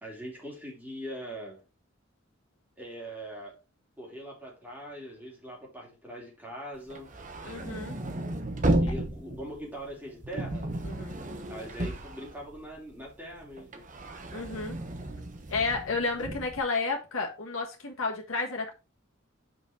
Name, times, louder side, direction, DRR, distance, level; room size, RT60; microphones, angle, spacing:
voice 1, 0.0-1.6 2.8-3.6 4.0-7.1 8.8-10.7 11.5-13.8, equal, 10° right, 3.0 m, -42 dB
sound 1, 6.8-12.9 13.3-16.6, right 1 dB, 40° right, 1.1 m, -33 dB
voice 2, 7.4-8.0 10.8-11.2 14.3-14.8 15.5-18.7, left 3 dB, 85° left, 1.4 m, -31 dB
6.0 x 5.3 x 4.4 m
head